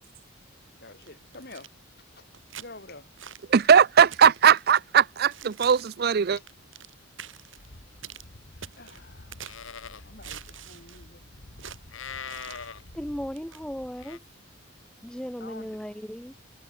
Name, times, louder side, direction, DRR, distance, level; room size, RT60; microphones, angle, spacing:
voice 1, 0.8-1.7 2.2-2.3 2.6-3.1 8.7-9.6 10.0-11.2 15.4-15.8, left 2 dB, 50° left, 7.4 m, -47 dB
sound 1, 1.0-1.7 2.3-2.7 3.2-3.5 4.1-4.6 5.3-6.0 6.4-6.9 7.2-7.7 8.0-8.3 8.6-9.7 10.2-11.1 11.6-11.8 12.3-12.7 13.4-13.6, right 9 dB, 65° right, 4.3 m, -44 dB
voice 2, 3.5-6.4, right 7 dB, 50° right, 0.4 m, -19 dB
Livestock farm animals working animals, 7.6-14.2, left 5 dB, 70° left, 2.0 m, -44 dB
voice 3, 12.9-14.2 15.0-16.3, equal, 5° left, 0.8 m, -36 dB
head